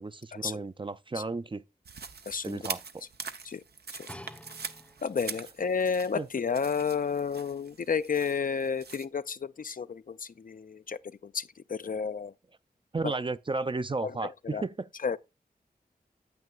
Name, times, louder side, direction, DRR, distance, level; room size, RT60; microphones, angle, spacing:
voice 1, 0.0-1.6 2.4-3.0 6.1-6.3 12.9-14.9, right 3 dB, 30° right, 0.4 m, -33 dB
sound 1, 1.9-9.1, right 5 dB, 80° right, 0.7 m, -43 dB
voice 2, 2.3-2.6 3.4-3.6 4.0-4.1 5.0-11.4 11.7-12.3 13.0-13.1 14.0-14.6 15.0-15.2, left 6 dB, 55° left, 0.4 m, -31 dB
sound 2, 4.1-5.4 6.1-6.2, left 1 dB, 5° left, 0.7 m, -48 dB
9.4 x 8.3 x 2.4 m
cardioid pair, 50°, 17 cm